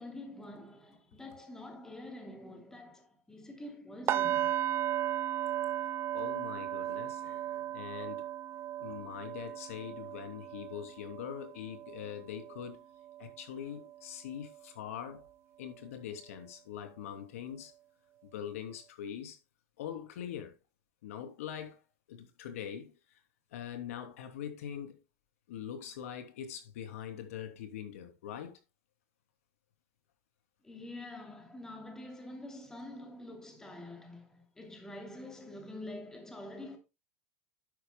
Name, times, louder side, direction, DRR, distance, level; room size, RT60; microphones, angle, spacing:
voice 1, 0.0-4.6 30.6-36.8, left 1 dB, 5° left, 2.8 m, -46 dB
sound 1, 4.1-14.0 14.3-14.6 15.1-15.2, right 12 dB, 35° right, 0.9 m, -36 dB
voice 2, 6.1-8.3 8.8-12.8 13.2-15.2 15.6-17.7 18.2-19.4 19.8-20.6 21.0-21.8 22.1-22.9 23.5-25.0 25.5-28.6, left 9 dB, 80° left, 2.9 m, -43 dB
11.5 x 9.6 x 2.2 m
supercardioid pair, 145°, 7 cm